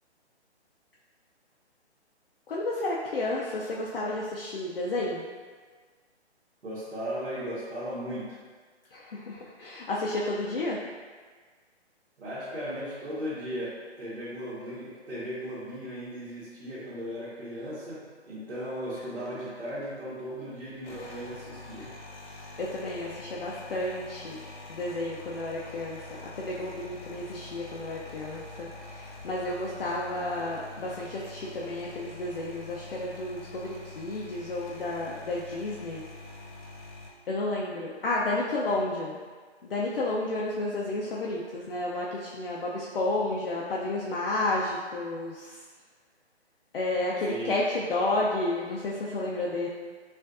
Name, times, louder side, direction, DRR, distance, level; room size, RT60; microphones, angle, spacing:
voice 1, 2.5-5.2 8.9-10.8 22.6-24.4 24.7-36.0 37.3-39.2 39.6-45.6 46.7-49.7, left 2 dB, 55° left, -4 dB, 0.5 m, -31 dB
voice 2, 6.6-8.4 12.2-21.9 47.3-47.6, equal, 75° right, -12 dB, 1.4 m, -37 dB
sound 1, 18.9-20.0 20.7-37.1, left 2 dB, 85° left, 0.9 m, -45 dB
4.6 x 2.5 x 2.4 m, 1.5 s
hypercardioid pair, 170°, 34 cm